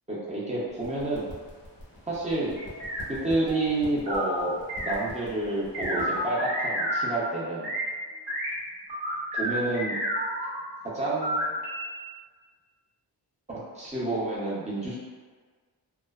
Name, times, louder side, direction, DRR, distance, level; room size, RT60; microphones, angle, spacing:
voice 1, 0.1-1.3 2.1-2.6 3.1-4.6 4.8-7.7 9.3-10.0 10.9-11.5 13.7-15.0, right 2 dB, 15° right, -7 dB, 0.6 m, -29 dB
sound 1, 0.7-6.3, left 1 dB, 25° left, 0.7 m, -46 dB
sound 2, 2.6-7.0 7.4-7.9 8.3-8.5 8.9-10.6 11.0-11.8, equal, 65° right, 1.1 m, -31 dB
2.4 x 2.2 x 2.3 m, 1.5 s
wide cardioid pair, 130°, 42 cm